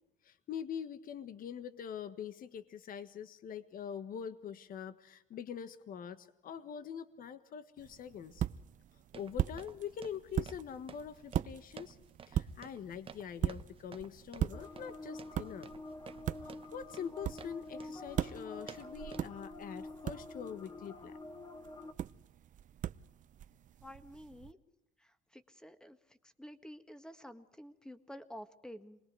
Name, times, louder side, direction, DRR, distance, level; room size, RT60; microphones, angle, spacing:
voice 1, 0.2-8.4 9.1-12.0 12.3-15.7 16.7-21.2, left 8 dB, 55° left, 11 dB, 1.5 m, -44 dB
sound 1, 7.8-24.5, right 11 dB, 50° right, 0.7 m, -41 dB
sound 2, 9.1-19.2, right 6 dB, 30° right, 1.2 m, -54 dB
sound 3, 14.5-21.9, left 2 dB, 25° left, 1.9 m, -48 dB
voice 2, 23.8-24.6 25.3-26.0 26.2-29.0, equal, 5° left, 9 dB, 1.7 m, -50 dB
28.0 x 21.0 x 4.8 m, 0.88 s
cardioid pair, 110°, 17 cm